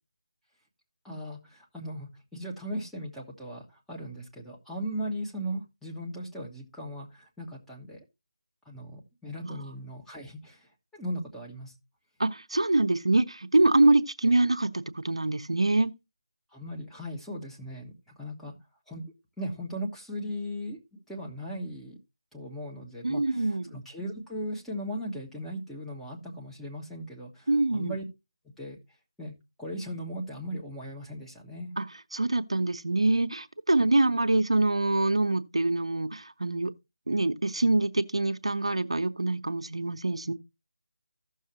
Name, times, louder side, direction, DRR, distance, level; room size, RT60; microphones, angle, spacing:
voice 1, 1.0-8.0 8.6-11.7 16.5-18.5 18.9-19.0 19.4-22.0 22.3-28.0 28.6-28.8 29.2-29.3 29.6-31.7, equal, ahead, 1.2 m, -38 dB
voice 2, 12.2-15.9 23.0-23.8 27.5-28.0 31.8-31.9 32.1-36.7 37.1-40.3, right 2 dB, 85° right, 0.8 m, -25 dB
15.0 x 6.5 x 2.9 m
figure-of-eight pair, 160°, 3 cm